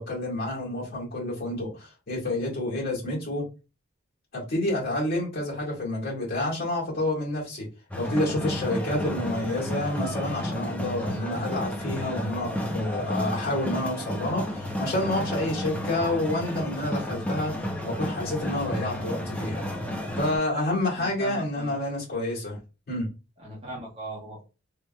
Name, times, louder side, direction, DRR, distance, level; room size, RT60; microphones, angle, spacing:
voice 1, 0.0-3.4 4.3-7.7 8.0-17.5 17.8-19.6 20.2-22.6 22.9-23.1, left 1 dB, 50° left, 1.9 m, -29 dB
sound 1, 7.9-20.4, left 1 dB, 5° left, 0.5 m, -32 dB
voice 2, 20.9-21.7 23.4-24.4, right 1 dB, 30° right, 1.0 m, -39 dB
3.2 x 2.9 x 2.2 m
head